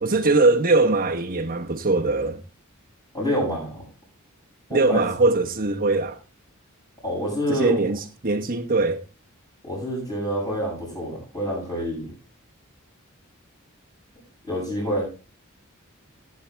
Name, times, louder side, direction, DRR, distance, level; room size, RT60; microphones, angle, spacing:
voice 1, 0.0-2.4 4.7-6.2 7.5-9.0, right 3 dB, 40° right, 1.1 m, -21 dB
voice 2, 3.1-3.8 4.7-5.0 7.0-7.8 9.6-12.1 14.4-15.1, equal, 20° left, 7.2 m, -27 dB
16.0 x 8.5 x 3.4 m
head